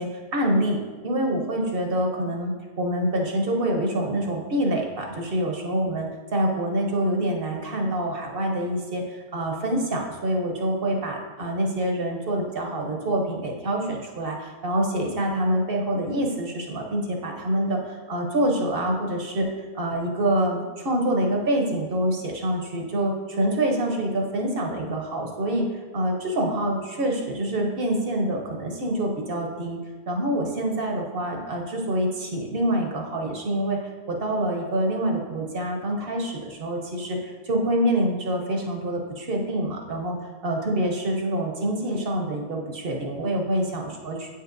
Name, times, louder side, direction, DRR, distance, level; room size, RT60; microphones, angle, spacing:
voice 1, 0.0-25.7 25.9-29.8 30.1-33.8 34.1-40.2 40.4-44.3, right 1 dB, 50° right, 1 dB, 0.8 m, -26 dB
8.2 x 5.5 x 2.6 m, 1.4 s
omnidirectional pair, 1.5 m